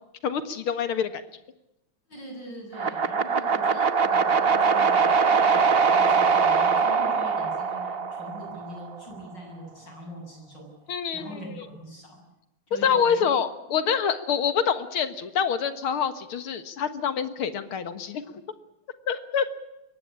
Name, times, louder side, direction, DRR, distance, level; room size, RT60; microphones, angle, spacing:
voice 1, 0.2-1.2 10.9-11.7 12.8-18.4 19.1-19.5, left 7 dB, 80° left, 11 dB, 2.4 m, -26 dB
voice 2, 2.1-10.7 11.1-12.2 12.7-13.3 13.7-13.8, right 1 dB, 55° left, 2 dB, 8.4 m, -42 dB
sound 1, 2.7-8.9, right 5 dB, 40° right, 0.9 m, -22 dB
22.5 x 18.0 x 9.9 m, 0.90 s
omnidirectional pair, 2.3 m